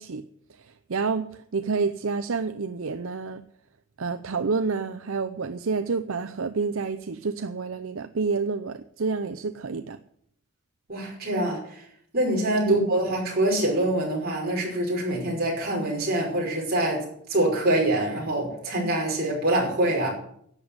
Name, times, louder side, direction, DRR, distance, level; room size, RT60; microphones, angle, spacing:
voice 1, 0.0-3.4 4.0-10.0 12.7-12.9, right 4 dB, 70° right, 10 dB, 0.6 m, -29 dB
voice 2, 10.9-11.8 12.1-20.1, right 1 dB, 45° right, -1 dB, 5.4 m, -25 dB
11.5 x 8.1 x 9.6 m, 0.69 s
head